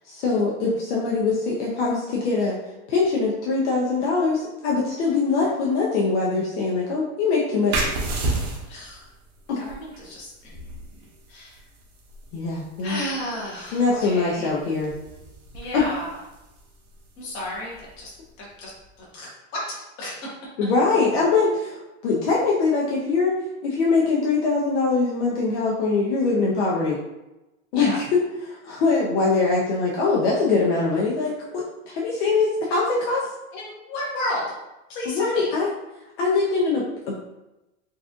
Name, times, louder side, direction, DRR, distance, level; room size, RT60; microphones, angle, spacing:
voice 1, 0.0-2.6 2.9-7.9 9.5-9.6 12.3-13.0 13.7-15.0 15.7-15.8 20.6-23.4 23.6-27.0 27.7-33.3 35.1-35.7 36.2-37.2, left 4 dB, 55° left, -4 dB, 0.7 m, -22 dB
sound 1, 7.7-19.0, right 2 dB, 80° right, 1.0 m, -34 dB
voice 2, 8.7-9.0 9.6-11.0 11.3-11.6 12.8-14.5 15.5-16.1 17.2-18.1 18.6-18.7 19.0-19.6 20.0-20.2 27.7-28.0 33.5-34.4 34.9-35.5, left 1 dB, 25° left, -5 dB, 0.9 m, -33 dB
4.0 x 2.5 x 2.4 m, 0.98 s
supercardioid pair, 170°, 43 cm